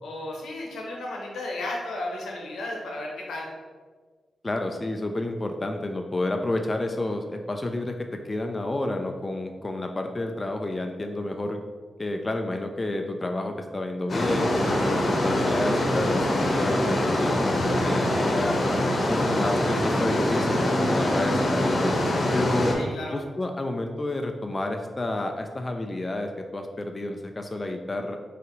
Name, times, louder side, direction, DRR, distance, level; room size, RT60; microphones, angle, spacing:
voice 1, 0.0-3.5 22.7-23.2, left 2 dB, 85° left, -1 dB, 0.8 m, -34 dB
voice 2, 4.4-7.9 8.2-11.6 12.0-18.6 19.1-21.9 22.3-22.7 23.1-28.2, left 2 dB, 30° left, 4 dB, 0.4 m, -30 dB
sound 1, 14.1-22.7, left 1 dB, 60° left, 0.9 m, -24 dB
4.1 x 2.7 x 3.8 m, 1.5 s
supercardioid pair, 45°, 0 cm